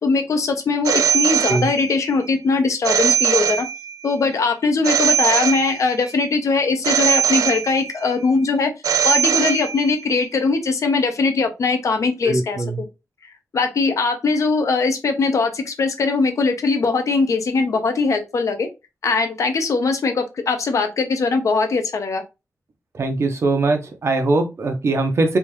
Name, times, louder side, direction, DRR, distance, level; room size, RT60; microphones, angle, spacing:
voice 1, 0.0-3.7 4.0-8.7 9.0-12.9 13.5-18.7 19.0-22.2, left 4 dB, 70° left, 0.6 m, -20 dB
Telephone, 0.9-2.1 2.8-4.1 4.8-6.1 6.8-8.1 8.8-10.1, right 8 dB, 90° right, 0.4 m, -20 dB
voice 2, 12.2-12.8 22.9-25.4, right 2 dB, 55° right, 0.7 m, -21 dB
3.4 x 2.7 x 3.0 m
wide cardioid pair, 175°, 6 cm